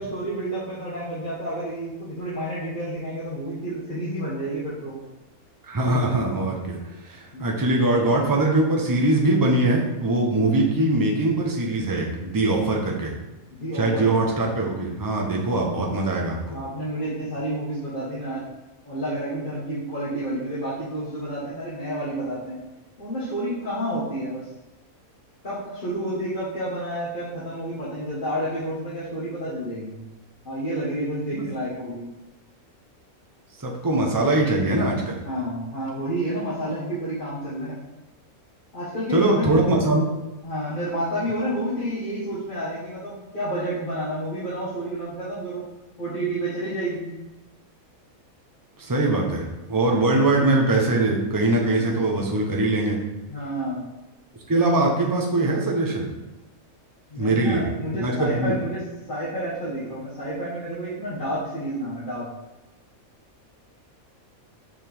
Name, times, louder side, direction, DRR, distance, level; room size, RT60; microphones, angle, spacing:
voice 1, 0.0-5.0 7.3-7.6 13.5-14.1 16.5-18.4 18.8-22.6 23.0-24.4 25.4-30.0 30.4-32.0 35.2-37.7 38.7-39.5 40.4-45.6 46.0-47.1 51.7-51.9 53.3-53.8 57.1-58.8 59.1-62.3, right 1 dB, 35° left, -10 dB, 1.6 m, -30 dB
voice 2, 5.7-13.1 13.7-16.6 31.3-31.5 33.6-35.2 39.1-40.1 48.8-53.0 54.5-56.1 57.2-57.7 57.9-58.6, right 2 dB, 20° right, 0 dB, 0.8 m, -22 dB
5.9 x 5.2 x 3.5 m, 1.1 s
omnidirectional pair, 1.5 m